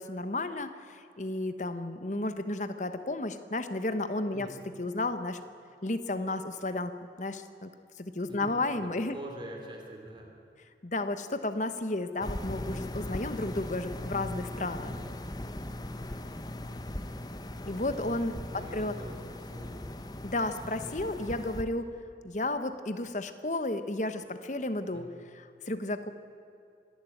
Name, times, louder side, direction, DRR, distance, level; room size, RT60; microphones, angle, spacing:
voice 1, 0.0-4.5 4.8-5.4 5.8-7.7 8.0-9.2 10.8-15.0 17.6-18.9 20.2-21.9 22.2-25.0 25.3-26.1, left 2 dB, 40° left, 10 dB, 1.1 m, -33 dB
voice 2, 8.3-10.3 14.9-15.1 18.5-19.9 24.9-25.1, right 1 dB, 25° right, 1 dB, 2.9 m, -45 dB
sound 1, 12.2-21.6, left 1 dB, 20° left, 0.9 m, -39 dB
26.0 x 11.5 x 9.2 m, 2.5 s
head